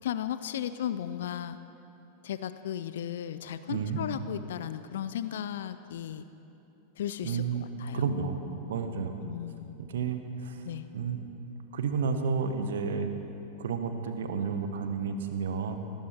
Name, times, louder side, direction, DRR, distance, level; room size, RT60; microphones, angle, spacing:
voice 1, 0.0-1.6 2.2-6.2 7.0-7.4 7.8-8.0 9.2-9.7 10.6-10.9, left 10 dB, 60° left, 13 dB, 0.5 m, -35 dB
voice 2, 7.2-9.2 9.8-10.6 10.9-11.4 11.7-13.1 13.6-15.8, right 5 dB, 60° right, 7 dB, 1.3 m, -31 dB
18.5 x 16.0 x 4.6 m, 2.8 s
figure-of-eight pair, 90°, 0 cm